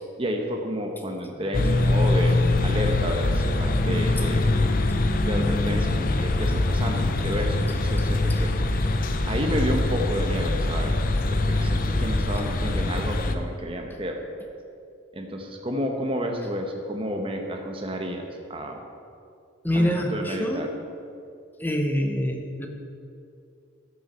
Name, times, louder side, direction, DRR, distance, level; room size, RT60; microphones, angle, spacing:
voice 1, 0.2-2.4 2.6-4.5 5.3-8.5 9.3-14.2 15.1-18.8 19.7-20.7, equal, 25° right, 3 dB, 1.0 m, -30 dB
sound 1, 1.5-13.4, left 2 dB, 45° left, 0.5 m, -23 dB
voice 2, 19.6-20.7 21.6-22.7, equal, 10° left, 3 dB, 0.8 m, -26 dB
13.5 x 6.7 x 4.3 m, 2.5 s
head